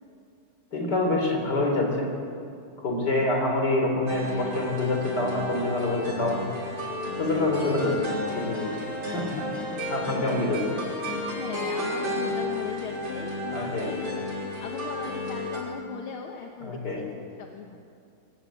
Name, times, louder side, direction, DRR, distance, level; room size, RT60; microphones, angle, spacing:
voice 1, 0.7-2.1 2.8-6.5 7.2-9.3 9.9-10.8 13.5-13.9 16.6-17.0, left 2 dB, 50° left, 1 dB, 4.5 m, -26 dB
sound 1, 4.1-15.6, left 1 dB, 60° right, 6.2 m, -33 dB
voice 2, 9.6-9.9 10.3-10.4 10.7-14.3 14.6-17.8, left 6 dB, 80° left, 2 dB, 2.1 m, -39 dB
24.0 x 16.0 x 8.5 m, 2.5 s
omnidirectional pair, 2.3 m